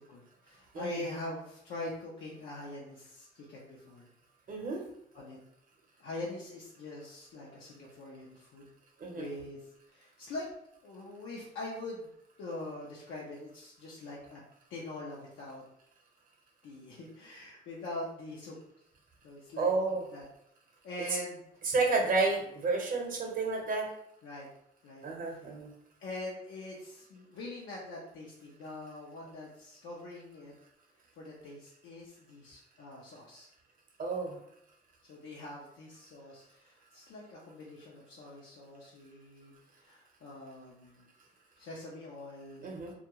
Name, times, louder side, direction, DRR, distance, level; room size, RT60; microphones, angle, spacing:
voice 1, 0.0-4.1 5.1-5.4 6.0-8.7 9.1-9.6 9.9-10.5 10.8-12.1 12.4-14.4 14.7-15.6 16.6-18.6 19.2-19.7 20.1-20.2 20.8-21.4 24.2-24.5 24.8-25.4 26.0-30.5 31.2-33.5 35.0-41.0 41.6-42.7, left 2 dB, 80° left, -5 dB, 0.6 m, -43 dB
voice 2, 4.5-4.8 9.0-9.3 19.6-20.0 21.6-23.9 25.0-25.7 34.0-34.4 42.6-42.9, right 3 dB, 45° right, 0 dB, 0.8 m, -30 dB
2.3 x 2.2 x 2.9 m, 0.75 s
cardioid pair, 90°, 20 cm